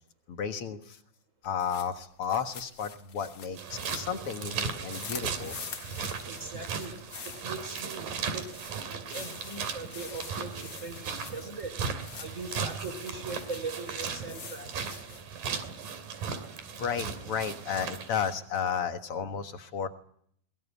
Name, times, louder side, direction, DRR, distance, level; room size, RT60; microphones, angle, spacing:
voice 1, 0.3-1.0 1.4-5.5 16.8-19.9, left 7 dB, 50° left, 7 dB, 1.9 m, -33 dB
sound 1, 1.4-15.4, left 6 dB, 85° left, 0.7 m, -46 dB
sound 2, 3.6-18.4, right 6 dB, 70° right, 4.2 m, -37 dB
voice 2, 6.0-7.0 7.2-8.5 8.9-11.8 12.2-14.9, right 3 dB, 20° right, 10 dB, 3.8 m, -40 dB
23.5 x 21.5 x 9.8 m, 0.65 s
omnidirectional pair, 4.1 m